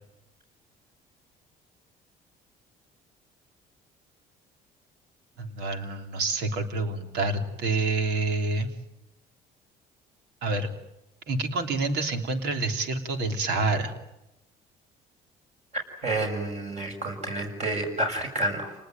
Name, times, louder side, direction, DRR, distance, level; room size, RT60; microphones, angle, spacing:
voice 1, 5.4-8.7 10.4-10.7 11.3-13.9, right 3 dB, 80° right, 6 dB, 3.4 m, -27 dB
voice 2, 16.0-18.7, right 2 dB, 40° right, 2 dB, 6.9 m, -29 dB
29.5 x 20.0 x 9.2 m, 0.88 s
cardioid pair, 110°, 17 cm